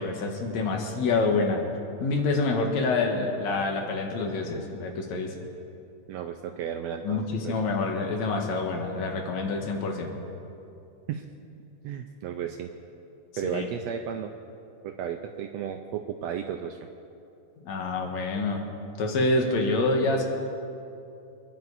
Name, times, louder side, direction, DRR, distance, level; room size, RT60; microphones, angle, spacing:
voice 1, 0.0-1.7 2.0-5.3 7.0-10.1 13.4-13.7 17.6-18.6 19.0-20.2, left 3 dB, 70° left, 2 dB, 2.8 m, -27 dB
voice 2, 6.1-7.6 11.1-11.2 11.8-12.7 13.4-14.3 14.8-16.8, right 9 dB, 75° right, 4 dB, 1.7 m, -34 dB
27.5 x 10.5 x 4.1 m, 2.7 s
omnidirectional pair, 3.4 m